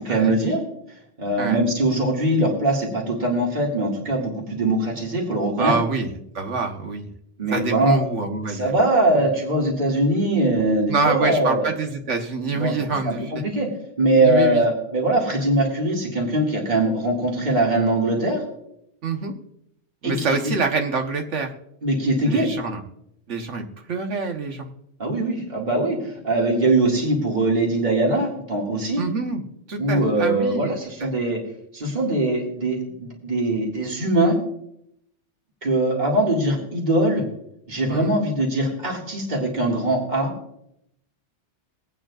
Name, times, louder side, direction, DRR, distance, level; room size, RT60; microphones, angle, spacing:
voice 1, 0.1-0.6 1.2-5.7 7.4-8.0 8.5-11.7 12.5-12.7 13.0-13.7 14.0-18.4 20.0-20.4 21.8-22.5 25.0-29.0 29.8-31.4 31.7-34.4 35.6-37.3 37.7-40.3, right 1 dB, 40° right, -2 dB, 2.3 m, -21 dB
voice 2, 5.6-6.1 6.3-7.1 7.5-8.7 9.1-9.2 10.9-13.4 14.2-14.6 19.0-19.4 20.0-21.5 22.3-22.8 23.3-24.6 29.0-30.7 31.0-31.1 37.9-38.1, right 4 dB, 85° right, 4 dB, 1.6 m, -26 dB
22.5 x 8.9 x 2.4 m, 0.76 s
omnidirectional pair, 1.2 m